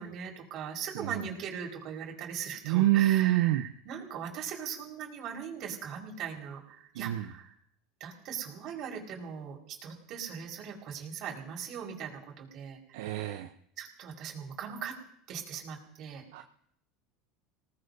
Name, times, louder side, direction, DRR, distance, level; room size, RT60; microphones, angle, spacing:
voice 1, 0.0-7.5 8.0-13.1 13.8-15.0 15.3-16.2, right 7 dB, 55° right, 1 dB, 4.8 m, -40 dB
voice 2, 2.6-3.6 7.0-7.3 12.9-13.5 16.3-16.4, right 15 dB, 80° right, 6 dB, 0.8 m, -26 dB
27.5 x 18.5 x 2.7 m, 0.70 s
supercardioid pair, 95°, 0 cm